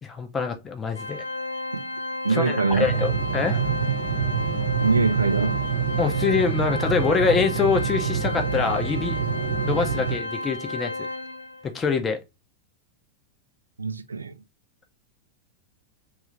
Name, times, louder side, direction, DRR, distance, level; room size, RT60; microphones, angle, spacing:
voice 1, 0.0-1.2 2.3-3.6 6.0-9.2 9.6-11.1 11.6-12.2, left 5 dB, 20° left, 0.7 m, -25 dB
Organ, 0.9-11.7, left 2 dB, 75° left, 0.5 m, -33 dB
voice 2, 2.2-2.9 4.8-5.6 13.8-14.3, right 4 dB, 75° right, 0.4 m, -24 dB
sound 1, 2.7-10.2, right 7 dB, 60° right, 0.9 m, -27 dB
3.1 x 2.6 x 3.0 m
figure-of-eight pair, 90°, 0 cm